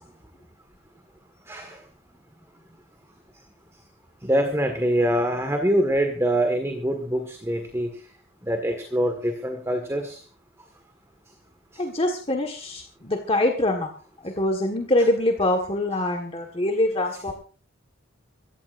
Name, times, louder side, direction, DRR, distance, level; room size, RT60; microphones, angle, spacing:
voice 1, 1.5-1.8 4.2-8.0 8.4-10.2, right 1 dB, 15° right, 5 dB, 1.7 m, -24 dB
voice 2, 11.8-13.9 14.2-17.3, left 1 dB, 30° left, 3 dB, 1.6 m, -24 dB
25.0 x 14.5 x 2.6 m, 0.38 s
head